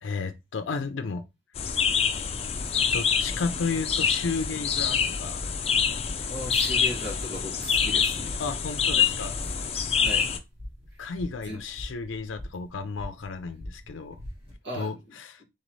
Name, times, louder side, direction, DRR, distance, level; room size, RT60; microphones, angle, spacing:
voice 1, 0.0-1.3 2.9-5.4 8.4-9.7 11.0-14.2 14.7-15.4, left 4 dB, 85° left, 0.5 m, -33 dB
sound 1, 1.6-10.4, left 6 dB, 30° left, 0.4 m, -26 dB
sound 2, 2.6-14.5, equal, 30° right, 1.5 m, -45 dB
voice 2, 6.2-8.4 8.9-9.1 10.0-10.3 11.4-11.6 14.6-15.4, equal, 70° right, 2.0 m, -37 dB
4.0 x 3.9 x 3.1 m
head